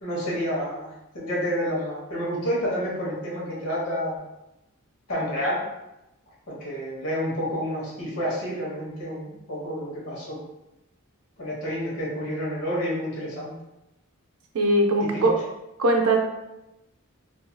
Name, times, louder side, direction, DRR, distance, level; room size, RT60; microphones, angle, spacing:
voice 1, 0.0-4.2 5.1-5.6 6.5-10.4 11.4-13.5 15.0-15.2, equal, 85° left, -5 dB, 1.1 m, -29 dB
voice 2, 14.5-15.4 15.8-16.2, right 1 dB, 80° right, 2 dB, 0.5 m, -20 dB
2.7 x 2.6 x 2.2 m, 0.92 s
head